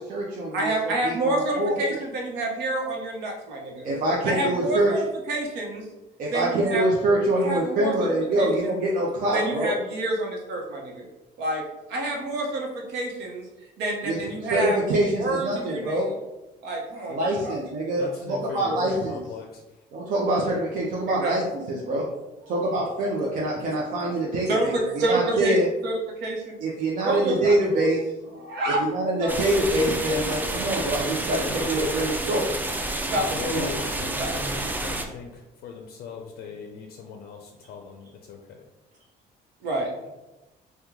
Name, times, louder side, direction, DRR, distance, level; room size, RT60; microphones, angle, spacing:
voice 1, 0.0-2.0 3.8-4.9 6.2-9.7 14.0-16.1 17.1-19.2 19.9-21.4 21.7-22.1 22.5-25.7 26.6-28.1 28.7-32.5 33.3-33.7, right 1 dB, 55° right, -3 dB, 0.6 m, -25 dB
voice 2, 0.5-3.9 4.2-5.9 6.3-6.8 7.4-8.8 9.3-11.1 11.4-11.6 11.9-14.8 15.2-16.1 16.6-17.5 18.0-18.1 20.0-20.1 21.1-21.4 22.4-22.5 24.5-25.6 25.8-26.6 27.0-27.9 28.3-28.8 29.2-29.7 33.1-33.6 33.8-33.9 34.2-34.5 39.6-39.9, right 2 dB, 85° right, 0 dB, 0.8 m, -28 dB
voice 3, 18.0-19.8 33.3-38.7, left 6 dB, 65° left, 2 dB, 0.4 m, -38 dB
sound 1, 29.3-35.1, right 2 dB, 10° right, 0.3 m, -29 dB
3.0 x 2.2 x 3.5 m, 1.0 s
cardioid pair, 110°, 17 cm